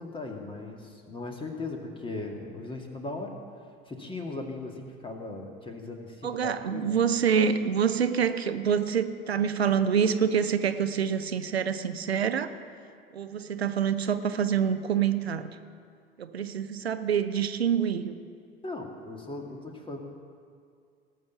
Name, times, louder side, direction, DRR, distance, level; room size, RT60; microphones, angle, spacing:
voice 1, 0.0-3.3 3.8-7.0 18.6-20.0, left 2 dB, 15° left, 2 dB, 2.1 m, -38 dB
voice 2, 6.2-12.5 13.1-15.5 16.2-18.1, right 7 dB, 85° right, 10 dB, 0.7 m, -26 dB
18.5 x 6.4 x 7.1 m, 2.2 s
figure-of-eight pair, 70°, 31 cm